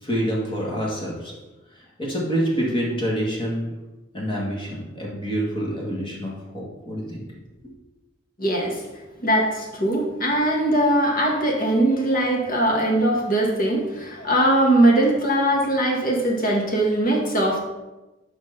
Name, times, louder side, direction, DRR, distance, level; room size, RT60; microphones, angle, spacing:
voice 1, 0.0-1.3 1.7-3.7 4.1-7.3 7.6-7.7, equal, 25° left, -4 dB, 1.9 m, -27 dB
voice 2, 8.4-8.8 9.2-17.6, right 1 dB, 45° left, -1 dB, 1.8 m, -21 dB
6.2 x 5.1 x 5.8 m, 1.1 s
head